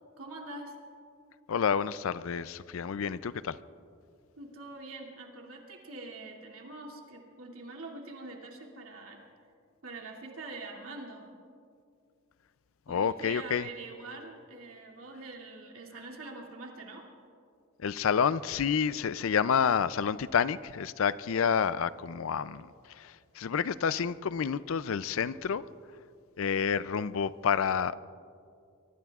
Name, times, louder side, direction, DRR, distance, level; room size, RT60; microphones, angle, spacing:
voice 1, 0.2-0.7 4.4-9.2 9.8-11.2 12.9-17.0, right 2 dB, 85° right, -1 dB, 2.6 m, -44 dB
voice 2, 1.5-3.6 12.9-13.7 17.8-25.6 26.4-28.0, left 7 dB, 70° left, 16 dB, 0.4 m, -29 dB
24.0 x 24.0 x 2.4 m, 2.4 s
head